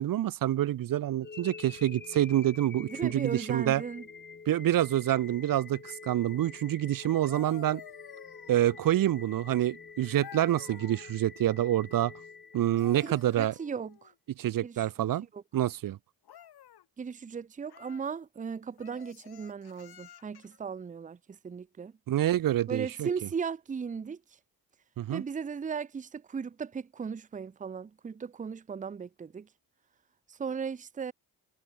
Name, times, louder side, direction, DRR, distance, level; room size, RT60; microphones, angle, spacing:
voice 1, 0.0-3.8 4.5-7.8 8.5-12.1 12.5-13.5 14.4-15.3 15.5-16.0 22.1-23.1 25.0-25.2, right 13 dB, 60° right, 0.7 m, -27 dB
sound 1, 1.2-13.3, left 5 dB, 25° left, 3.2 m, -48 dB
voice 2, 2.8-4.0 13.0-14.1 14.6-15.4 17.0-21.9 22.7-24.2 25.1-29.5 30.3-31.1, right 6 dB, 20° right, 0.6 m, -37 dB
sound 2, 7.0-9.0 10.2-11.1 12.5-14.2 16.2-16.9 17.7-18.1 18.8-20.6 22.4-22.6, left 11 dB, 85° left, 5.5 m, -51 dB
wide cardioid pair, 180°, 37 cm